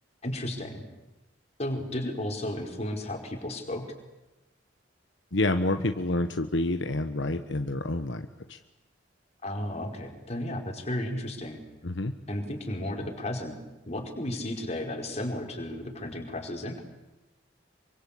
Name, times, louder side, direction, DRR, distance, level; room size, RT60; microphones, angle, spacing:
voice 1, 0.2-0.8 1.6-3.9 9.4-11.6 12.3-13.6 13.9-16.8, left 1 dB, 35° left, 2 dB, 5.1 m, -33 dB
voice 2, 5.3-8.6 11.8-12.1, left 2 dB, 75° left, 7 dB, 1.3 m, -28 dB
27.0 x 24.5 x 8.6 m, 1.0 s
head